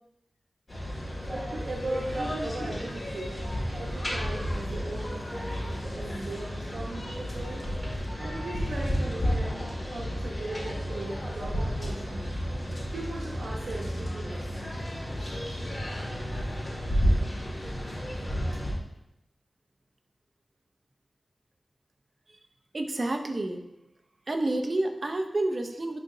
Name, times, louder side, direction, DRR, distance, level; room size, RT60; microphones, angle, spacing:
sound 1, 0.7-18.7, equal, 30° left, 2.2 m, -32 dB
voice 1, 1.1-7.7 8.2-12.2 12.9-14.5, right 2 dB, 85° right, -3 dB, 1.0 m, -38 dB
voice 2, 22.7-23.6 24.3-26.0, right 2 dB, 50° right, 4 dB, 0.7 m, -29 dB
10.5 x 4.0 x 2.7 m, 0.87 s
wide cardioid pair, 60°, 0 cm